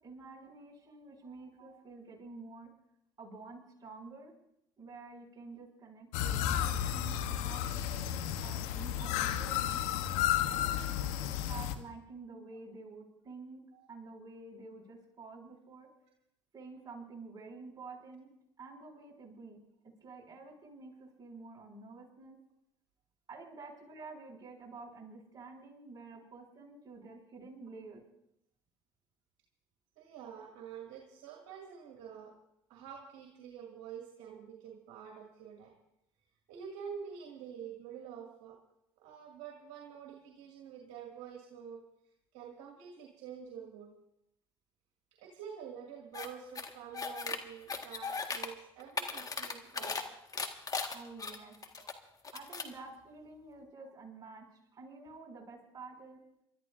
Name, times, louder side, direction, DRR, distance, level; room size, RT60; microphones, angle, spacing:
voice 1, 0.0-2.7 3.2-4.3 4.8-9.8 10.5-13.6 13.9-15.9 16.5-18.3 18.6-22.4 23.3-28.0 50.9-51.5 52.3-56.2, right 3 dB, 35° right, -2 dB, 6.7 m, -50 dB
sound 1, 6.1-11.7, left 11 dB, 75° left, 1.0 m, -32 dB
voice 2, 30.0-32.3 32.7-35.7 36.5-38.6 39.0-41.8 42.3-43.9 45.1-50.1 51.7-51.8, right 7 dB, 70° right, 0 dB, 2.2 m, -48 dB
sound 2, 46.1-46.3 46.5-47.4 47.7-48.5 48.8-50.0 50.3-51.9 52.2-52.7, left 4 dB, 30° left, 1.7 m, -37 dB
30.0 x 13.0 x 2.6 m, 0.78 s
hypercardioid pair, 65°, 12 cm